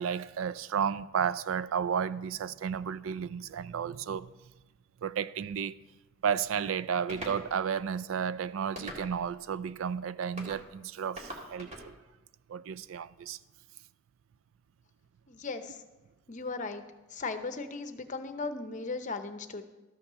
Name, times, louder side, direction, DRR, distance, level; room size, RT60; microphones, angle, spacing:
voice 1, 0.0-4.3 5.0-5.8 6.2-12.0 12.5-13.4, right 7 dB, 75° right, 0.4 m, -32 dB
sound 1, 7.1-7.4 8.8-9.3 10.4-10.6 11.2-11.9, equal, 35° right, 2.1 m, -41 dB
voice 2, 15.3-15.8 16.3-16.8 17.1-19.6, left 3 dB, 35° left, 0.7 m, -37 dB
13.0 x 5.8 x 6.8 m
head